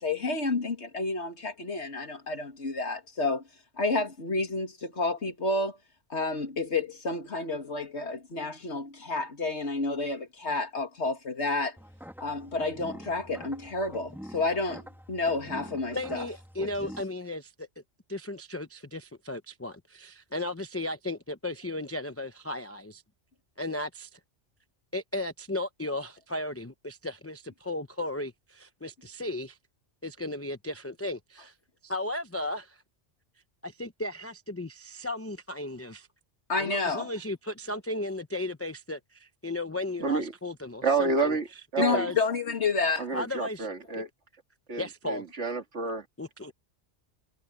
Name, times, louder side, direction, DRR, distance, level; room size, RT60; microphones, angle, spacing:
voice 1, 0.0-3.4 3.8-5.8 6.1-11.8 12.2-16.2 16.6-16.7 36.5-37.1 41.8-43.1, left 3 dB, 70° left, 2.5 m, -30 dB
sound 1, 11.8-17.0, equal, ahead, 1.7 m, -46 dB
voice 2, 15.9-17.7 18.1-23.0 23.6-24.2 24.9-29.6 30.0-31.5 31.8-32.8 33.6-36.1 36.6-41.4 41.9-42.2 43.1-43.7 43.9-44.0 44.8-45.2 46.2-46.5, left 2 dB, 15° left, 0.6 m, -35 dB
voice 3, 40.0-40.3 40.8-41.5 41.7-42.1 43.0-44.1 44.7-46.1, right 4 dB, 75° right, 2.4 m, -29 dB
omnidirectional pair, 1.2 m